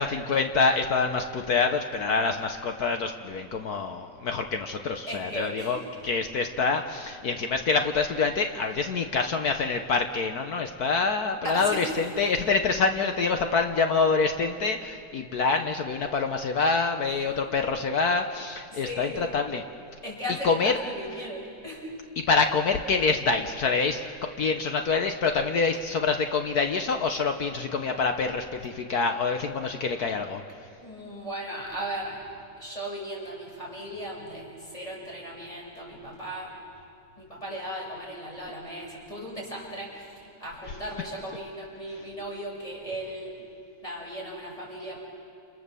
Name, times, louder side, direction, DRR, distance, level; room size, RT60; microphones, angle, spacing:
voice 1, 0.0-5.8 6.0-19.6 20.4-20.7 22.3-30.4, left 4 dB, 60° left, 5 dB, 1.4 m, -26 dB
voice 2, 5.1-5.8 11.4-12.0 17.0-17.5 18.7-19.3 20.0-21.9 30.8-32.2 32.6-36.5 37.2-43.3 43.8-45.0, equal, 20° left, -3 dB, 6.5 m, -37 dB
29.5 x 27.5 x 6.9 m, 2.5 s
omnidirectional pair, 2.0 m